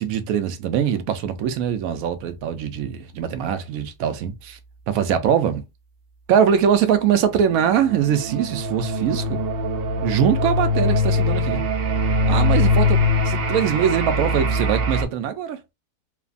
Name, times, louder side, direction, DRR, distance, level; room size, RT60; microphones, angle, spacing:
voice 1, 0.0-4.6 4.9-5.6 6.3-9.4 10.0-11.6 12.3-15.6, right 8 dB, 70° right, 1.0 m, -22 dB
sound 1, 7.4-15.0, left 2 dB, 90° right, 0.5 m, -22 dB
3.1 x 2.2 x 2.4 m
omnidirectional pair, 1.6 m